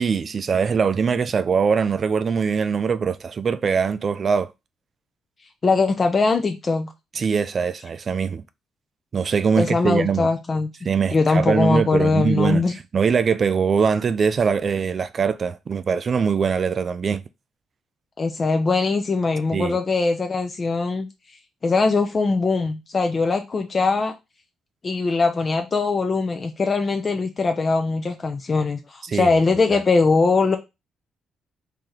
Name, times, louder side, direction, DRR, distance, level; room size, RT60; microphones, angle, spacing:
voice 1, 0.0-4.5 7.2-8.4 9.1-10.3 10.8-12.6 12.9-17.2 19.5-19.8 29.0-29.3, right 6 dB, 45° right, 0.3 m, -22 dB
voice 2, 5.6-6.9 9.6-10.7 11.1-12.7 18.2-21.1 21.6-24.1 24.8-30.6, left 4 dB, 35° left, 0.5 m, -21 dB
3.1 x 2.8 x 3.8 m
cardioid pair, 90°, 0 cm